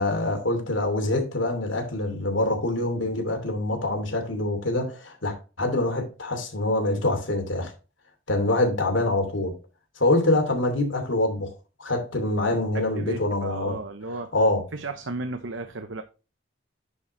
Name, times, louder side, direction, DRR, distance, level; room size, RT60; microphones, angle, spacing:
voice 1, 0.0-7.7 8.3-9.5 10.0-11.5 11.8-13.8 14.3-14.6, left 2 dB, 85° left, 2.9 m, -25 dB
voice 2, 12.7-14.3 14.7-16.0, right 3 dB, 80° right, 0.9 m, -34 dB
10.5 x 5.0 x 3.2 m
head